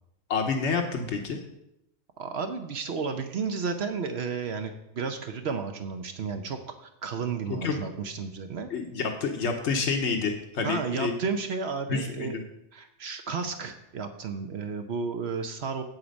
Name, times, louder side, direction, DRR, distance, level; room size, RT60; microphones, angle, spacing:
voice 1, 0.3-1.4 7.5-7.8 8.7-11.2 11.9-12.4, left 5 dB, 80° left, 4 dB, 1.2 m, -28 dB
voice 2, 2.2-8.7 10.6-12.4 12.7-15.8, right 5 dB, 70° right, 7 dB, 1.0 m, -32 dB
8.4 x 7.8 x 5.2 m, 0.83 s
omnidirectional pair, 1.2 m